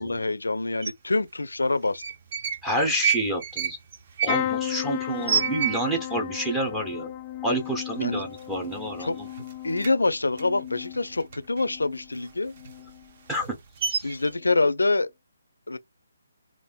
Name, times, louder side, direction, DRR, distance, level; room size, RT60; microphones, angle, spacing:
voice 1, 0.0-2.0 8.0-8.2 9.0-9.1 9.6-12.5 14.0-15.1 15.7-15.8, left 3 dB, 85° left, 0.4 m, -25 dB
sound 1, 0.8-0.9 1.8-2.6 2.9-6.2 6.5-6.6 6.8-7.4 7.8-7.9 8.2-9.0 9.3-11.7 12.0-14.3, right 8 dB, 45° right, 0.7 m, -29 dB
voice 2, 2.6-3.8 4.2-7.1 7.4-9.3 13.3-13.5 13.9-14.1, right 1 dB, 5° right, 0.7 m, -29 dB
sound 2, 4.3-12.1 12.5-13.1 14.3-14.5 14.8-14.9, left 12 dB, 25° left, 0.4 m, -35 dB
3.5 x 2.5 x 2.2 m
figure-of-eight pair, 150°, 0 cm